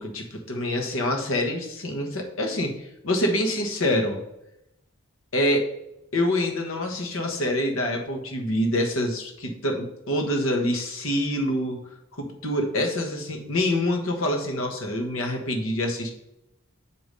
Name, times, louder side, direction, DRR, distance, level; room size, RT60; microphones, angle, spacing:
voice 1, 0.0-4.2 5.3-5.7 6.1-11.8 12.2-16.1, left 1 dB, 70° left, 2 dB, 1.3 m, -26 dB
8.1 x 3.0 x 5.4 m, 0.83 s
head